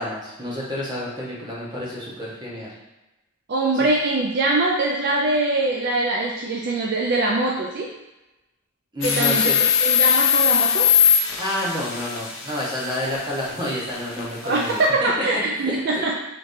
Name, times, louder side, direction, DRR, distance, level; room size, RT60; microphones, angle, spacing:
voice 1, 0.0-2.7 3.7-3.8 8.9-9.5 11.4-15.1 15.5-16.0, left 1 dB, 20° right, -5 dB, 1.0 m, -29 dB
voice 2, 3.5-7.9 9.0-9.6 9.8-10.9 14.4-16.2, right 2 dB, 50° right, -1 dB, 0.4 m, -23 dB
sound 1, 9.0-14.9, left 8 dB, 60° left, 0.7 m, -21 dB
5.0 x 3.1 x 2.7 m, 1.0 s
head